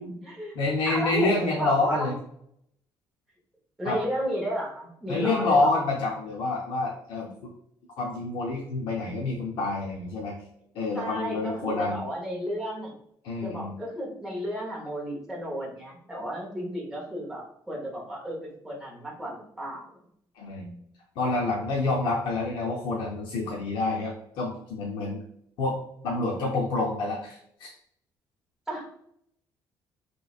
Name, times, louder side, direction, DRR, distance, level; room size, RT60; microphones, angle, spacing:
voice 1, 0.0-0.6 0.9-2.1 3.8-5.8 10.9-12.9 13.4-19.8 28.7-28.9, equal, 5° right, -4 dB, 0.8 m, -33 dB
voice 2, 0.6-2.1 3.8-4.0 5.1-7.5 8.0-10.4 10.7-12.0 13.2-13.7 20.4-20.8 21.2-25.2 25.6-25.8 26.0-27.7, left 3 dB, 75° left, -3 dB, 0.6 m, -27 dB
3.1 x 3.0 x 2.4 m, 0.71 s
cardioid pair, 180°, 8 cm